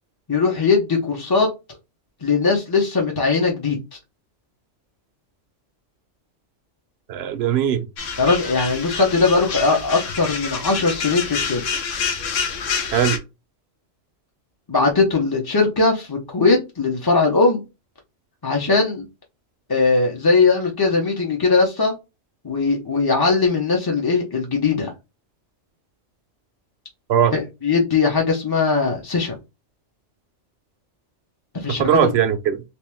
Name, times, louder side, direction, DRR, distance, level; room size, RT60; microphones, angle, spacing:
voice 1, 0.3-1.5 2.2-3.8 8.2-11.6 14.7-17.6 18.4-19.1 19.7-21.9 22.4-24.9 27.3-29.4 31.5-32.1, left 4 dB, 25° left, 0.6 m, -19 dB
voice 2, 7.1-7.9 12.9-13.2 27.1-27.4 31.8-32.6, right 9 dB, 65° right, 0.7 m, -19 dB
sound 1, 8.0-13.2, left 6 dB, 80° left, 1.1 m, -27 dB
3.2 x 3.0 x 3.3 m
omnidirectional pair, 1.3 m